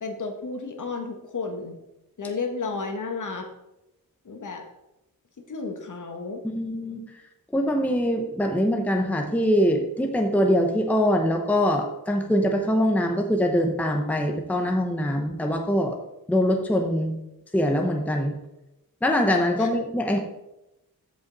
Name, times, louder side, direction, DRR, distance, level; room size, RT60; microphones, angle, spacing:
voice 1, 0.0-1.7 2.2-3.5 4.2-4.6 5.5-6.4 19.6-19.7, left 4 dB, 55° left, 4 dB, 1.4 m, -32 dB
voice 2, 6.6-7.0 7.5-16.0 16.3-17.2 17.5-18.4 19.0-20.2, equal, 5° left, 3 dB, 0.7 m, -23 dB
14.5 x 5.3 x 4.0 m, 0.92 s
wide cardioid pair, 180°, 36 cm